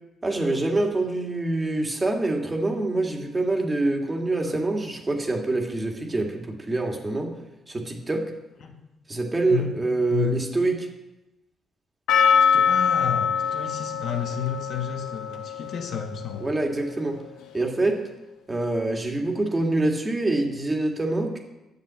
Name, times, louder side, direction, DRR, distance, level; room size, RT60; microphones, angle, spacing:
voice 1, 0.2-7.3 7.7-8.3 9.1-10.8 16.4-17.2 17.5-18.0 18.5-21.4, right 2 dB, 20° right, 2 dB, 2.3 m, -25 dB
voice 2, 10.1-10.4 12.5-16.5, left 8 dB, 65° left, 3 dB, 1.6 m, -31 dB
Percussion, 12.1-17.0, left 7 dB, 90° left, 0.9 m, -24 dB
10.5 x 7.3 x 7.8 m, 0.98 s
cardioid pair, 90°, 0 cm